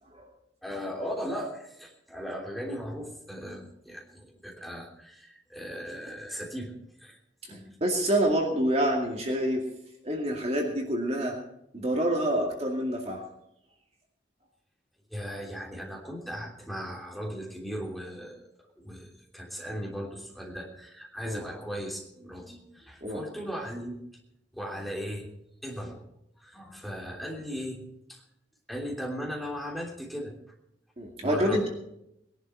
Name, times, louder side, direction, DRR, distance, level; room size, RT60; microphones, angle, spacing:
voice 1, 0.6-6.7 7.0-7.2 7.5-7.7 15.1-18.4 18.8-24.0 24.5-25.3 25.6-26.0 26.4-27.8 28.1-28.2 28.7-30.3 31.2-31.7, equal, ahead, -2 dB, 3.2 m, -37 dB
voice 2, 7.8-9.6 10.0-11.4 11.7-13.2 21.2-21.4 23.0-23.2 31.0-31.7, right 1 dB, 35° right, 0 dB, 2.2 m, -27 dB
20.5 x 11.5 x 4.5 m, 0.81 s
head